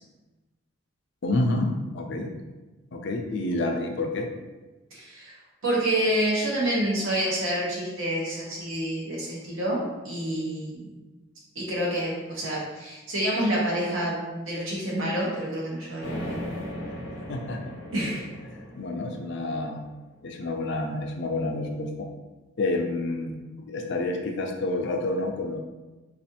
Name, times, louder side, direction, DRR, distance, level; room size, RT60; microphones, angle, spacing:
voice 1, 1.2-2.4 2.9-4.3 17.3-17.6 18.0-18.1 18.7-19.9 20.2-22.1 22.6-25.6, left 2 dB, 60° left, 3 dB, 0.4 m, -29 dB
voice 2, 4.9-5.3 5.6-10.9 11.5-16.4 17.9-18.2, right 1 dB, 80° right, -4 dB, 1.1 m, -28 dB
sound 1, 16.0-19.9, left 1 dB, 75° left, 0.8 m, -38 dB
4.1 x 2.4 x 2.8 m, 1.1 s
head